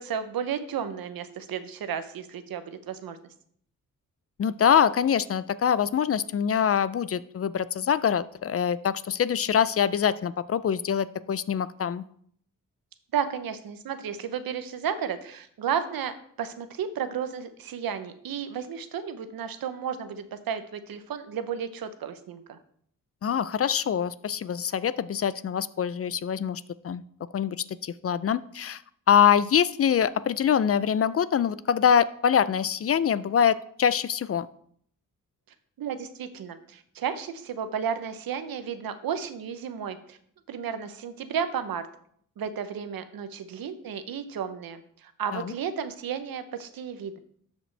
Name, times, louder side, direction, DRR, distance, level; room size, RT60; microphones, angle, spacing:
voice 1, 0.0-3.2 13.1-22.6 35.8-40.2 40.5-41.9 42.4-47.2, right 7 dB, 85° right, 11 dB, 0.8 m, -33 dB
voice 2, 4.4-12.0 23.2-27.0 27.3-28.8 29.1-34.5 45.3-45.5, left 8 dB, 45° left, 17 dB, 0.4 m, -24 dB
13.0 x 5.2 x 3.3 m, 0.63 s
cardioid pair, 70°, 34 cm